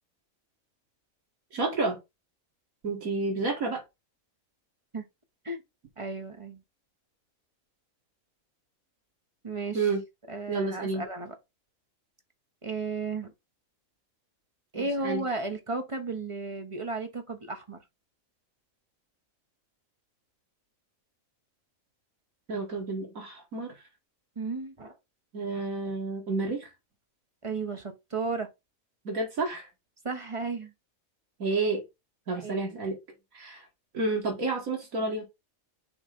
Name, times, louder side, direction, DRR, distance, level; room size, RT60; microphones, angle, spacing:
voice 1, 1.5-2.0 2.8-3.8 9.7-10.0 10.5-11.0 14.8-15.2 22.5-23.7 25.3-26.7 29.0-29.7 31.4-31.8 32.3-33.0 33.3-33.6 33.9-35.2, right 3 dB, 80° right, 2.5 m, -30 dB
voice 2, 6.0-6.6 9.4-9.9 10.3-11.3 12.6-13.3 14.7-17.8 24.4-24.9 27.4-28.5 30.0-30.7 32.4-32.7, right 3 dB, 25° right, 0.9 m, -34 dB
6.2 x 3.2 x 5.1 m
omnidirectional pair, 1.4 m